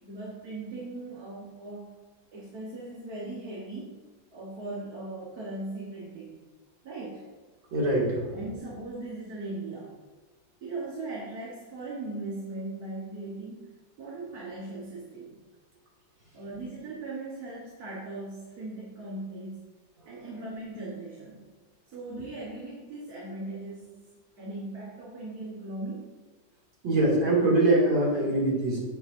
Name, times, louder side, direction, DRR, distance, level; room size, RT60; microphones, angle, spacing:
voice 1, 0.0-2.0 2.3-4.0 4.3-6.4 6.8-7.3 8.3-10.0 10.6-13.7 14.0-15.4 16.3-19.6 20.1-21.5 21.9-24.0 24.4-26.2, right 2 dB, 55° right, -4 dB, 1.8 m, -39 dB
voice 2, 7.7-8.4 26.8-28.8, right 2 dB, 80° right, -5 dB, 3.4 m, -23 dB
10.0 x 8.0 x 2.7 m, 1.3 s
omnidirectional pair, 2.0 m